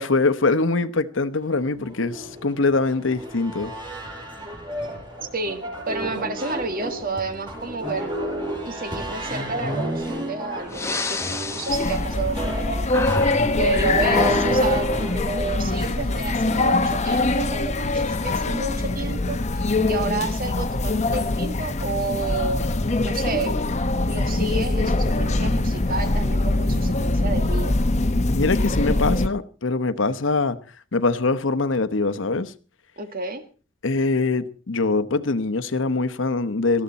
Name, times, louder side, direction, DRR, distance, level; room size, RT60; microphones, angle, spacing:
voice 1, 0.0-3.7 28.3-30.6 30.9-32.5 33.8-36.8, left 3 dB, 75° left, 1.0 m, -23 dB
sound 1, 1.6-15.1, right 1 dB, 25° right, 5.3 m, -31 dB
voice 2, 5.3-8.2 8.7-13.0 13.4-22.6 23.0-23.6 24.1-27.7 33.0-33.5, right 3 dB, 50° right, 1.7 m, -30 dB
Breathing, 10.1-10.2 10.6-12.6 12.9-14.0, left 3 dB, 15° left, 1.2 m, -30 dB
sound 2, 11.7-29.3, left 2 dB, 35° left, 0.9 m, -23 dB
19.0 x 13.5 x 4.2 m
head